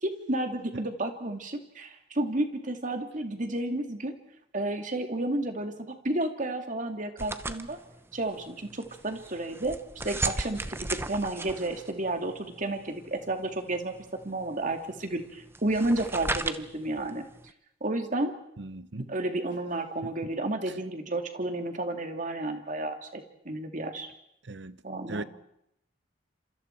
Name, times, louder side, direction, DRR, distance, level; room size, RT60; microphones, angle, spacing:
voice 1, 0.0-4.1 4.5-7.8 8.1-9.8 10.0-14.0 14.2-17.3 17.8-18.3 19.0-24.1 24.8-25.2, right 2 dB, 45° right, 2.4 m, -31 dB
sound 1, 7.2-17.5, right 2 dB, 15° right, 0.9 m, -37 dB
voice 2, 18.6-19.1 24.5-24.7 25.1-25.2, right 2 dB, 70° right, 0.9 m, -37 dB
28.5 x 27.0 x 4.6 m
head